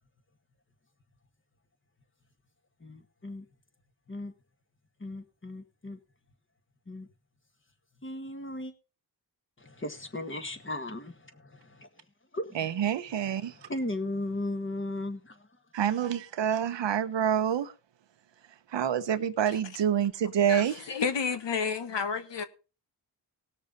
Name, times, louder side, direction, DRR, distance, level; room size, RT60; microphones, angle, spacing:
voice 1, 2.8-3.5 4.1-4.3 5.0-6.0 6.9-7.1 8.0-8.7 9.6-11.9 12.3-12.7 13.4-15.5, left 1 dB, 25° left, 1.9 m, -36 dB
voice 2, 12.5-13.7 15.7-17.7 18.7-20.8, right 9 dB, 75° right, 0.9 m, -27 dB
voice 3, 20.5-22.4, left 5 dB, 70° left, 1.3 m, -30 dB
18.5 x 6.7 x 4.1 m
cardioid pair, 70°, 45 cm